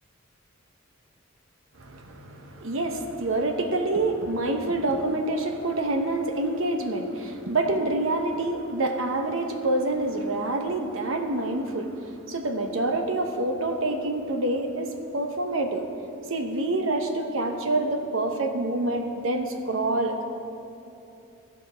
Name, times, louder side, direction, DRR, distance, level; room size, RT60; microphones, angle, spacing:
voice 1, 1.8-15.9 16.3-20.2, right 2 dB, 75° right, 5 dB, 0.9 m, -27 dB
15.5 x 5.3 x 5.1 m, 2.7 s
head